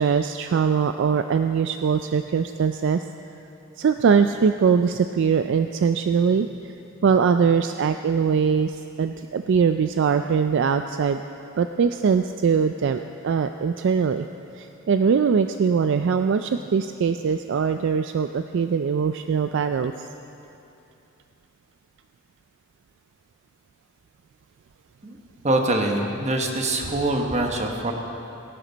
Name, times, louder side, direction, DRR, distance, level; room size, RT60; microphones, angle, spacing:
voice 1, 0.0-3.0 3.8-6.7 7.0-11.2 11.6-14.3 14.6-20.1, right 6 dB, 60° right, 8 dB, 0.3 m, -22 dB
voice 2, 25.4-27.9, right 2 dB, 30° right, 2 dB, 1.2 m, -24 dB
18.0 x 11.0 x 4.0 m, 2.8 s
head